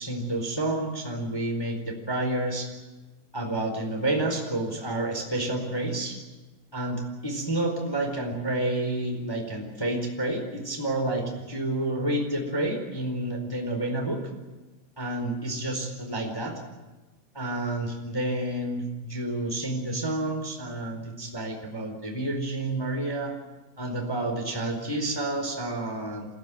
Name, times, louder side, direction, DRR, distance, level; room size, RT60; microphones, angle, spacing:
voice 1, 0.0-2.7 3.3-6.1 6.7-14.3 15.0-16.6 17.3-23.4 23.8-26.3, right 1 dB, 5° left, 2 dB, 3.2 m, -29 dB
28.0 x 15.5 x 9.2 m, 1.1 s
omnidirectional pair, 6.0 m